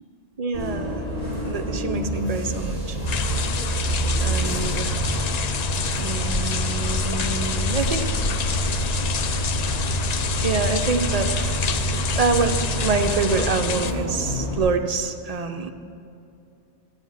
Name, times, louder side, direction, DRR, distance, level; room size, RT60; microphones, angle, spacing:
voice 1, 0.4-1.0 1.4-3.0 4.2-5.0 6.0-8.1 10.4-11.6 11.9-15.7, right 4 dB, 45° right, 7 dB, 0.5 m, -26 dB
Bus, 0.5-14.6, right 1 dB, 35° left, 2.5 m, -27 dB
sound 1, 3.1-13.9, left 6 dB, 55° left, 0.4 m, -28 dB
13.5 x 8.8 x 5.7 m, 2.7 s
omnidirectional pair, 1.2 m